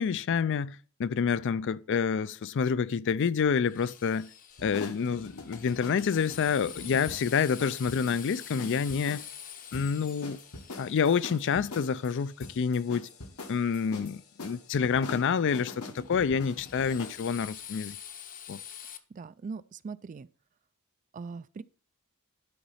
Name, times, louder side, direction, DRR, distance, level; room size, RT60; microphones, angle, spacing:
voice 1, 0.0-4.3 4.6-9.2 9.7-10.4 10.8-13.1 13.5-18.0 18.5-18.6, left 6 dB, 55° left, 0.4 m, -28 dB
Drill, 3.6-12.6 16.0-19.0, left 9 dB, 40° left, 0.8 m, -46 dB
sound 1, 4.5-17.2, left 2 dB, 80° left, 1.5 m, -45 dB
voice 2, 19.1-20.3 21.1-21.6, right 4 dB, 35° right, 0.3 m, -40 dB
11.5 x 4.1 x 5.6 m
head